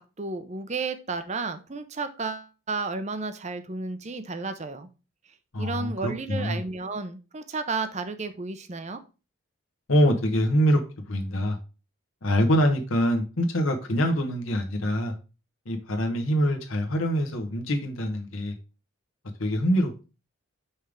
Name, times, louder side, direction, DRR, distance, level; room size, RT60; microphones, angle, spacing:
voice 1, 0.0-4.9 5.6-9.0, right 4 dB, 35° right, 10 dB, 0.6 m, -32 dB
voice 2, 5.5-6.6 9.9-10.8 11.1-11.6 12.2-15.1 15.7-18.5 19.4-20.0, equal, 75° left, 3 dB, 1.1 m, -24 dB
5.6 x 3.5 x 4.9 m, 0.31 s
head